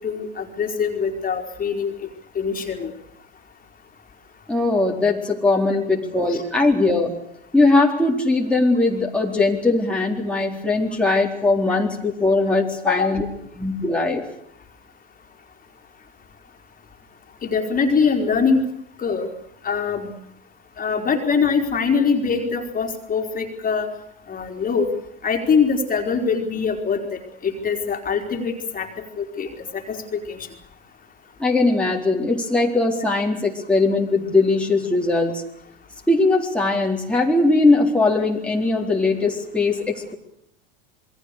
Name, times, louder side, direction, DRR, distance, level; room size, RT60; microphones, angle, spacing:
voice 1, 0.0-1.9 2.3-2.9 6.3-6.4 12.9-13.1 17.4-18.6 19.0-19.3 19.6-20.1 20.8-23.9 24.3-24.9 25.2-28.9 29.2-29.5 29.7-30.4, left 5 dB, 30° left, 4 dB, 4.3 m, -23 dB
voice 2, 4.5-7.2 7.5-13.2 13.6-14.2 31.4-35.4 36.1-40.1, left 3 dB, 5° left, -2 dB, 4.2 m, -20 dB
28.0 x 21.5 x 6.8 m, 0.75 s
hypercardioid pair, 95°, 29 cm